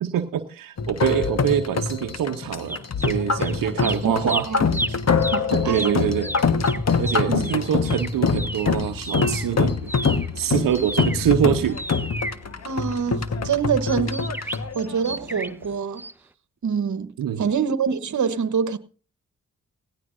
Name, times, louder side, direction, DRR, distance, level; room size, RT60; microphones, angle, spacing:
voice 1, 0.0-4.5 5.7-6.3 7.0-9.9 10.4-11.8 17.2-17.5, right 10 dB, 85° right, 0.8 m, -25 dB
sound 1, 0.8-15.6, left 5 dB, 50° left, 1.4 m, -24 dB
sound 2, 2.7-3.5 3.8-9.5 9.8-13.1 13.8-15.7 16.0-16.1, right 1 dB, 5° right, 0.8 m, -33 dB
voice 2, 3.8-4.8 5.3-6.1 7.3-7.5 12.6-16.0 16.6-18.8, right 6 dB, 60° right, 1.2 m, -26 dB
17.5 x 17.0 x 2.6 m
supercardioid pair, 45°, 33 cm